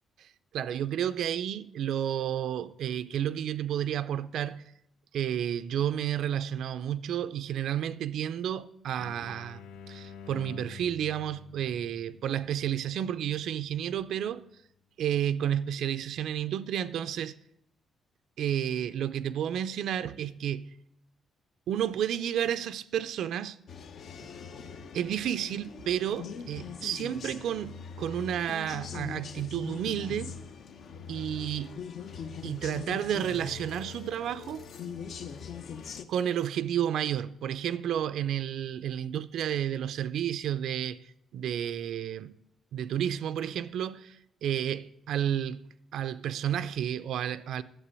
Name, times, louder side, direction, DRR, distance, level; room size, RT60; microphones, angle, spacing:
voice 1, 0.5-4.7 5.1-9.6 9.9-14.5 15.0-17.3 18.4-20.8 21.7-23.6 24.9-30.4 31.1-31.8 32.4-34.7 36.1-41.0 41.3-42.3 42.7-47.6, right 10 dB, 70° right, 0.5 m, -31 dB
sound 1, 9.0-14.5, left 6 dB, 85° left, 1.1 m, -49 dB
sound 2, 23.7-36.1, left 6 dB, 55° left, 0.9 m, -42 dB
11.5 x 7.5 x 8.3 m
cardioid pair, 165°, 0 cm